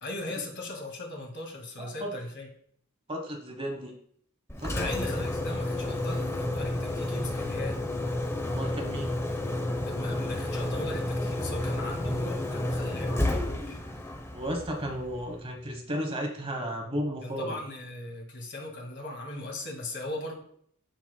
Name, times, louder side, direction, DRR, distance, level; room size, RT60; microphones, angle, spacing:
voice 1, 0.0-2.5 4.7-7.8 9.8-13.8 17.2-20.4, left 2 dB, 50° left, 1 dB, 2.0 m, -38 dB
voice 2, 1.8-2.2 3.1-3.9 4.6-5.1 8.5-9.2 14.3-17.6, equal, 25° right, 3 dB, 1.0 m, -34 dB
Engine, 4.5-15.4, left 1 dB, 10° left, 0.6 m, -31 dB
13.0 x 4.5 x 2.2 m, 0.63 s
head